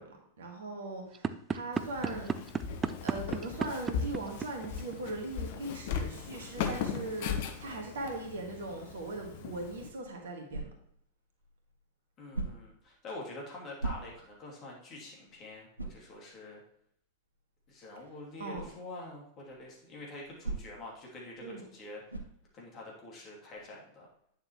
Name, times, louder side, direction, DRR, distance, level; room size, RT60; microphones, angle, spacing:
voice 1, 0.0-2.5 3.0-10.7 18.4-18.7 21.4-21.6, right 2 dB, 65° right, 2 dB, 1.7 m, -40 dB
sound 1, 1.1-5.1, right 6 dB, 20° right, 0.4 m, -33 dB
Walk footsteps, 1.7-9.9, left 7 dB, 50° left, 0.8 m, -38 dB
sound 2, 10.5-11.0 12.3-12.8 13.8-14.4 14.9-15.0 15.7-16.1 18.5-18.8 20.4-20.9 22.1-22.4, right 3 dB, 85° right, 0.8 m, -38 dB
voice 2, 12.2-16.6 17.7-22.2 22.5-24.1, left 2 dB, 35° left, -3 dB, 2.7 m, -46 dB
9.2 x 6.7 x 3.0 m, 0.70 s
figure-of-eight pair, 90°, 0 cm